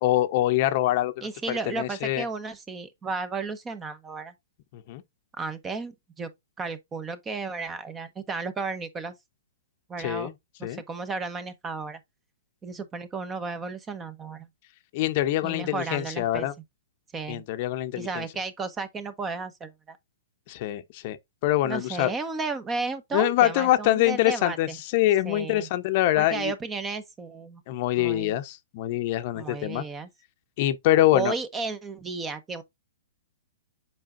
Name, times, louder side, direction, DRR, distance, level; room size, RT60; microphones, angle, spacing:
voice 1, 0.0-2.2 4.7-5.0 10.0-10.3 10.6-10.8 14.9-16.5 17.3-18.2 20.5-21.2 21.4-22.1 23.1-26.5 27.7-29.8 30.6-31.3, left 14 dB, 45° left, 0.8 m, -24 dB
voice 2, 1.2-4.3 5.3-6.3 6.6-9.1 9.9-10.3 10.6-12.0 12.6-14.5 15.4-16.5 17.1-17.4 17.9-20.0 21.6-24.8 25.2-25.7 26.2-27.6 28.0-28.4 29.3-30.1 31.1-32.6, right 4 dB, 15° right, 1.0 m, -33 dB
7.5 x 4.9 x 2.5 m
hypercardioid pair, 135°, 0 cm